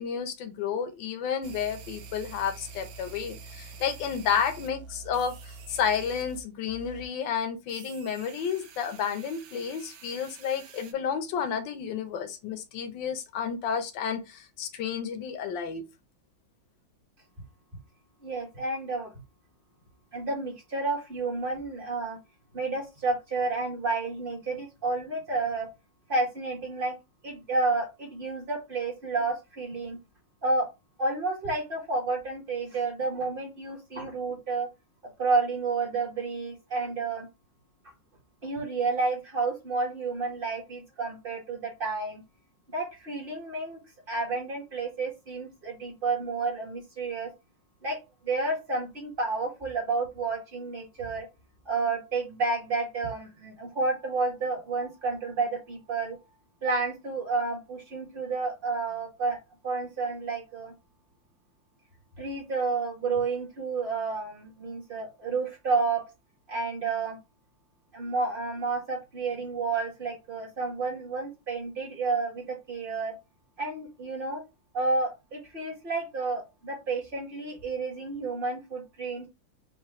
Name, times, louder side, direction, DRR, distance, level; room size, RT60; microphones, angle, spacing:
voice 1, 0.0-15.8, left 7 dB, 70° left, 1.5 m, -31 dB
sound 1, 1.4-6.4 6.7-7.1 7.7-10.9, right 4 dB, 80° right, 1.6 m, -46 dB
voice 2, 18.2-19.1 20.1-22.2 22.5-25.7 26.1-26.9 27.2-30.0 30.4-30.7 31.0-34.7 35.2-37.3 38.4-42.2 42.7-43.8 44.1-47.3 47.8-51.3 51.6-56.2 56.6-59.4 59.6-60.7 62.1-66.0 66.5-67.2 67.9-73.2 73.6-74.4 74.7-79.3, right 3 dB, 30° right, 1.6 m, -30 dB
5.8 x 2.8 x 3.0 m
omnidirectional pair, 2.1 m